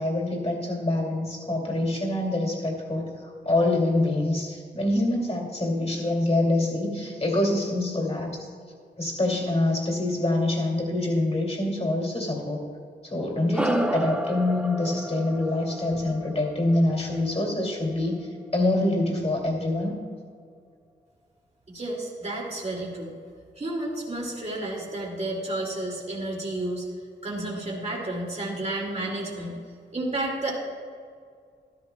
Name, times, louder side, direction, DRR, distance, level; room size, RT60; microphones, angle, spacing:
voice 1, 0.0-8.4 9.0-12.6 13.0-19.9, left 1 dB, 35° left, -1 dB, 2.6 m, -25 dB
sound 1, 13.5-18.3, equal, 5° right, 0.6 m, -32 dB
voice 2, 21.7-23.1 23.6-26.8 27.2-29.6 29.9-30.6, right 2 dB, 35° right, -3 dB, 2.4 m, -31 dB
13.5 x 13.0 x 2.3 m, 2.1 s
wide cardioid pair, 90°, 19 cm